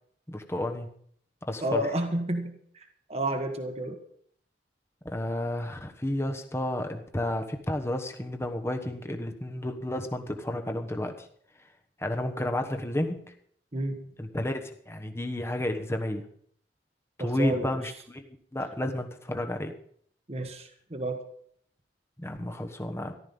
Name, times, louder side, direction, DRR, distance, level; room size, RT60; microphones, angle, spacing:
voice 1, 0.3-0.9 1.4-1.8 5.0-11.1 12.0-13.3 14.2-16.2 17.2-18.2 18.5-19.7 22.2-23.1, left 1 dB, 15° left, 5 dB, 1.2 m, -31 dB
voice 2, 1.6-2.8 3.1-4.0 13.7-14.1 17.2-17.8 20.3-21.2, right 1 dB, 35° right, 5 dB, 1.4 m, -31 dB
14.5 x 12.0 x 5.4 m, 0.64 s
head